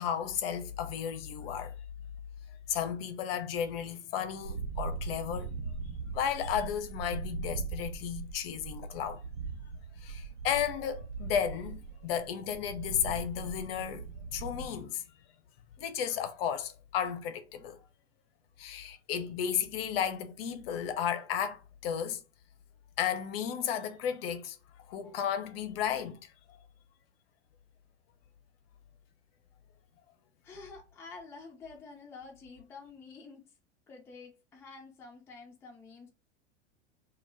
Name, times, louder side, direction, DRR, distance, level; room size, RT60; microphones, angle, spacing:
voice 1, 0.0-1.7 2.7-5.5 6.1-9.2 10.0-15.0 15.8-17.8 18.6-22.2 23.0-24.6 24.9-26.2 26.5-26.6, left 8 dB, 55° left, 0.5 m, -33 dB
sound 1, 4.4-14.7, right 4 dB, 75° right, 0.8 m, -40 dB
voice 2, 30.4-33.4 33.9-36.1, left 4 dB, 10° left, 0.3 m, -49 dB
2.2 x 2.1 x 3.2 m
figure-of-eight pair, 85°, 36 cm